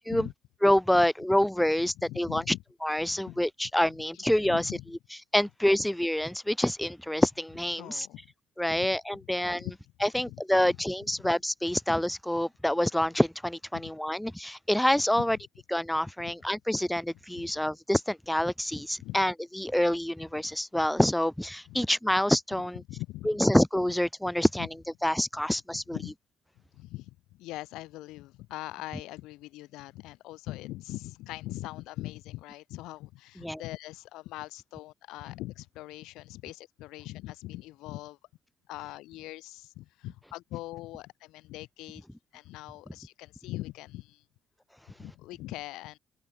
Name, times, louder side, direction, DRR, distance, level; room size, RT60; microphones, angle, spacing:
voice 1, 0.6-2.4 2.8-4.6 5.3-8.1 8.6-9.7 10.0-15.4 15.7-22.8 23.2-24.7 25.0-26.0 33.4-33.6, left 1 dB, 5° left, 3.1 m, -27 dB
voice 2, 2.1-2.6 3.1-3.4 4.1-4.9 7.8-8.3 8.7-8.9 9.2-10.8 13.7-13.9 15.3-15.4 17.4-17.5 19.0-19.2 21.7-21.9 22.9-23.4 25.7-26.1 26.7-38.2 38.7-42.0 42.3-44.2 45.0-46.0, left 18 dB, 85° left, 7.1 m, -42 dB
open air
cardioid pair, 90°, 0 cm